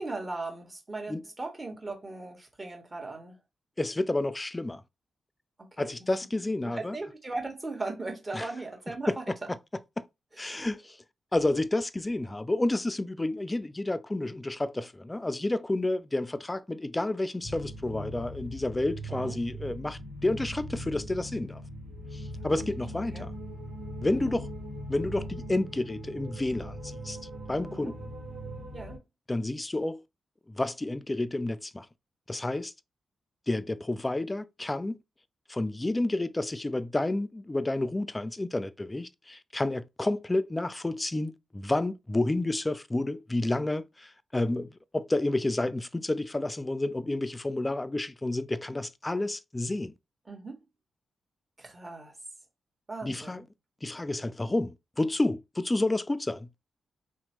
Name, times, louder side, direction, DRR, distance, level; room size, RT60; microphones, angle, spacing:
voice 1, 0.0-3.4 5.6-5.9 6.6-9.2 10.5-10.7 19.1-19.3 23.1-23.3 24.1-24.3 27.7-27.9 28.7-29.0 50.3-50.6 51.6-52.1 52.9-53.4, right 2 dB, 30° right, 1.3 m, -38 dB
voice 2, 3.8-4.8 5.8-7.0 8.3-8.5 9.1-9.6 10.0-10.1 10.4-11.0 11.3-21.6 22.1-23.3 24.0-24.5 24.9-27.2 27.5-27.9 29.3-30.0 30.5-31.9 32.3-32.7 33.5-35.0 35.5-49.9 53.0-53.5 53.8-56.5, left 2 dB, 25° left, 0.3 m, -30 dB
sound 1, 17.4-29.0, equal, 80° right, 1.2 m, -40 dB
2.9 x 2.1 x 3.0 m
supercardioid pair, 40°, 0 cm